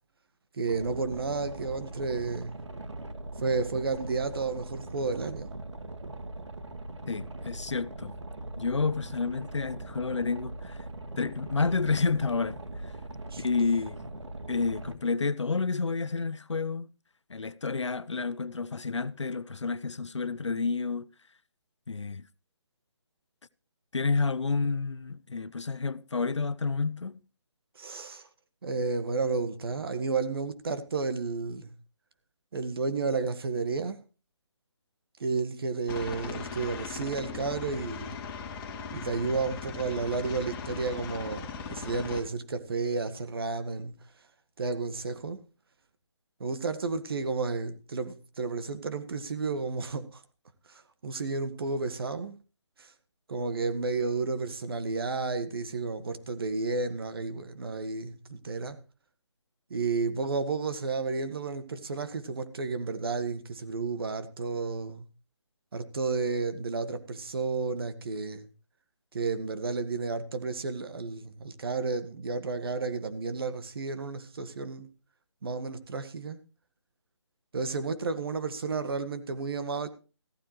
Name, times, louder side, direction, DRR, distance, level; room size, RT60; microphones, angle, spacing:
voice 1, 0.5-2.6 3.4-5.5 13.3-13.4 27.7-28.3 28.6-31.7 32.5-34.0 35.2-38.2 38.9-43.9 44.6-45.4 46.4-50.2 50.7-52.3 52.8-52.9 53.3-58.8 59.7-65.0 65.7-68.5 69.1-74.9 75.4-76.4 77.5-79.9, right 4 dB, 55° right, 1.7 m, -32 dB
Boat Water vehicle, 0.6-14.9, right 2 dB, 85° right, 1.9 m, -41 dB
voice 2, 7.1-8.1 8.6-10.8 11.2-12.6 13.4-14.0 14.5-16.9 17.3-21.1 21.9-22.3 23.9-27.2, left 4 dB, 90° left, 0.7 m, -30 dB
Aircraft, 35.9-42.2, left 5 dB, 15° left, 2.5 m, -39 dB
15.0 x 14.0 x 3.1 m
figure-of-eight pair, 155°, 15 cm